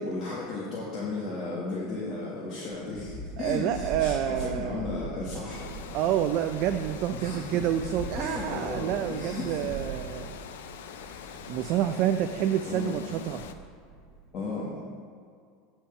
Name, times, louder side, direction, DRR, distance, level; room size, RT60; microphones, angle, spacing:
voice 1, 0.0-5.7 7.1-7.7 8.2-9.7 10.9-11.1 12.7-13.0 14.3-14.7, left 3 dB, 40° left, -7 dB, 1.7 m, -35 dB
Thunderstorm, 2.7-14.3, right 2 dB, 15° right, 2.1 m, -42 dB
voice 2, 3.4-4.8 5.9-10.4 11.3-13.4, right 10 dB, 55° right, 8 dB, 0.4 m, -28 dB
Water, 5.5-13.5, left 7 dB, 80° left, 0.5 m, -43 dB
8.8 x 4.3 x 5.7 m, 2.2 s
supercardioid pair, 105°, 0 cm